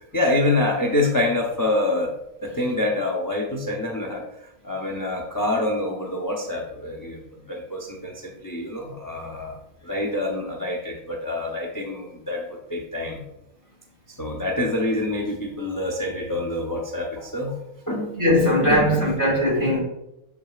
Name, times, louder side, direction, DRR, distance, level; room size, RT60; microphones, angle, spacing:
voice 1, 0.1-2.1 2.4-4.2 4.6-7.2 7.5-9.5 9.8-13.2 14.2-17.5 17.9-18.1 18.6-19.1, left 2 dB, 25° left, 0 dB, 0.4 m, -26 dB
voice 2, 18.2-19.8, left 1 dB, 35° right, -4 dB, 2.4 m, -19 dB
6.8 x 6.1 x 2.4 m, 0.85 s
omnidirectional pair, 1.5 m